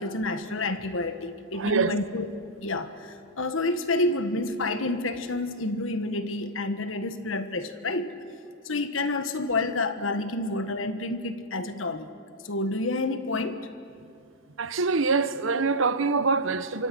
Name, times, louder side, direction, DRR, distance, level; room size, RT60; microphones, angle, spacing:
voice 1, 0.0-2.3 2.6-8.2 8.6-12.1 12.4-13.6, left 2 dB, 80° left, 1.4 m, -29 dB
voice 2, 1.5-2.0 14.6-16.9, right 4 dB, 75° right, 0.9 m, -25 dB
26.0 x 24.5 x 6.2 m
head